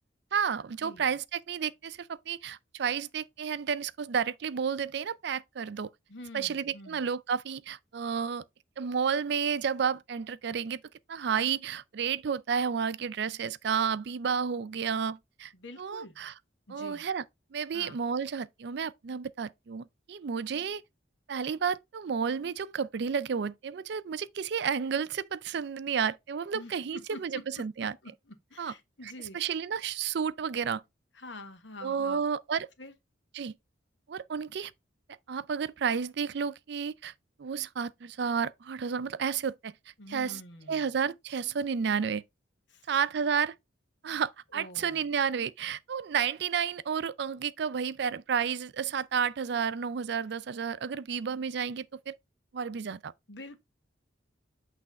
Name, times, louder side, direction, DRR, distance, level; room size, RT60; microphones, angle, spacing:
voice 1, 0.3-5.9 6.3-8.4 8.8-10.8 11.1-15.5 15.8-16.3 16.7-17.2 17.5-20.8 21.3-28.0 28.6-28.7 29.0-30.8 31.8-32.7 33.3-33.5 34.1-34.7 35.3-37.1 37.4-39.7 40.1-40.4 40.7-42.2 42.9-43.5 44.0-52.2 52.5-53.1, right 6 dB, 60° right, 0.4 m, -31 dB
voice 2, 6.1-7.0 15.5-16.1 16.7-17.1 17.7-18.0 26.5-27.4 27.8-28.1 28.5-29.4 31.1-32.2 32.8-32.9 40.0-40.8 42.7-42.9 44.5-45.0 53.3-53.6, left 1 dB, 70° left, 1.4 m, -46 dB
8.4 x 3.3 x 4.1 m
head